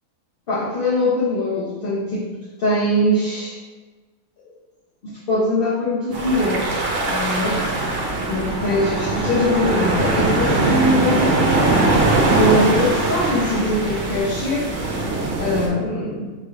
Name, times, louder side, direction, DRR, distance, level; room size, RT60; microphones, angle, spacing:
voice 1, 0.5-2.3 2.6-3.6 5.0-7.6 8.3-14.7 15.4-16.3, left 1 dB, 45° left, -7 dB, 0.9 m, -22 dB
sound 1, 6.1-15.7, right 2 dB, 55° right, 0.8 m, -21 dB
5.2 x 3.3 x 2.5 m, 1.3 s
omnidirectional pair, 1.5 m